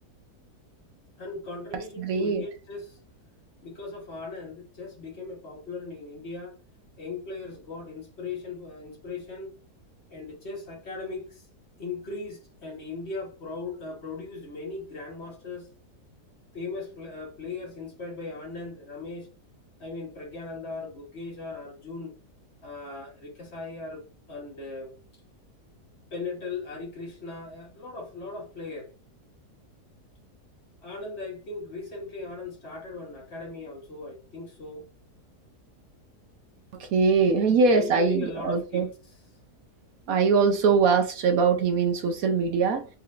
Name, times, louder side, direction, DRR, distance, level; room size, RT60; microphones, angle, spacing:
voice 1, 1.2-3.0 3.6-6.6 7.0-9.5 10.1-11.5 11.8-15.7 16.5-19.3 19.8-22.1 22.6-24.9 26.1-28.9 30.8-34.8 37.6-38.9, left 3 dB, 45° left, 1.2 m, -38 dB
voice 2, 2.0-2.4 36.8-38.9 40.1-42.9, right 5 dB, 65° right, 1.0 m, -22 dB
4.4 x 3.8 x 2.4 m
omnidirectional pair, 1.7 m